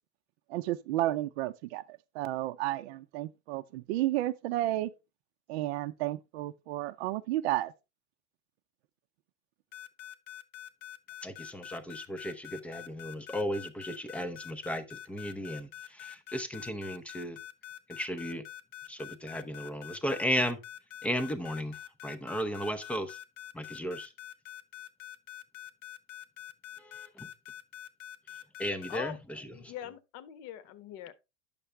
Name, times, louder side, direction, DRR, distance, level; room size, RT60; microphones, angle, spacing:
voice 1, 0.5-4.9 5.5-7.7, right 15 dB, 50° right, 0.7 m, -32 dB
sound 1, 9.7-29.0, left 12 dB, 90° left, 1.3 m, -45 dB
voice 2, 11.2-17.4 17.9-18.4 18.9-20.6 21.0-21.8 22.0-23.2 23.5-24.1 26.8-27.3 28.6-29.7, equal, 5° left, 0.6 m, -35 dB
voice 3, 29.5-31.1, left 11 dB, 40° left, 1.0 m, -42 dB
9.9 x 6.9 x 3.3 m
supercardioid pair, 150°, 39 cm